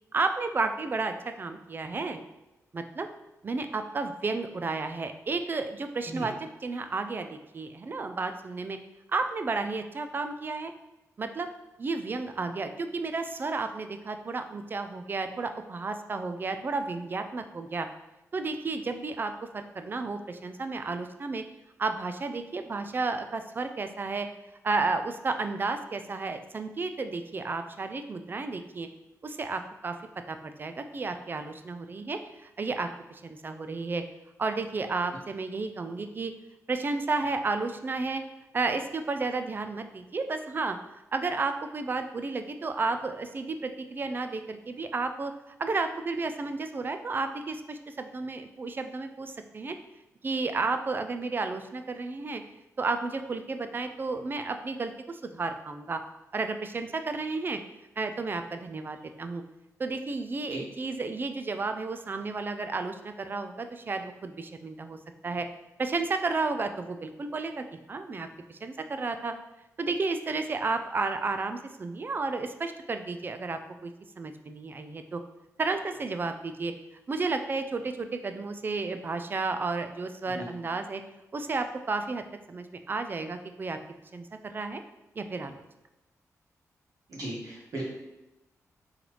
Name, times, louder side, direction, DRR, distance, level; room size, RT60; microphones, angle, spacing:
voice 1, 0.1-2.2 2.7-3.1 3.4-6.3 6.6-8.8 9.1-10.7 11.2-11.5 11.8-17.9 18.3-21.4 21.8-24.3 24.6-28.9 29.2-30.0 30.3-34.0 34.4-36.3 36.7-38.2 38.5-40.8 41.1-45.3 45.6-49.8 50.2-52.4 52.8-56.0 56.3-57.6 58.0-59.4 59.8-65.0 65.2-65.5 65.8-69.3 69.8-73.9 74.2-75.2 75.6-76.7 77.1-81.0 81.3-82.2 82.5-83.8 84.1-84.8 85.2-85.6, right 3 dB, 35° right, 8 dB, 0.3 m, -32 dB
voice 2, 87.1-87.8, right 1 dB, 70° right, -5 dB, 1.4 m, -36 dB
3.9 x 3.1 x 3.0 m, 0.98 s
wide cardioid pair, 100°, 6 cm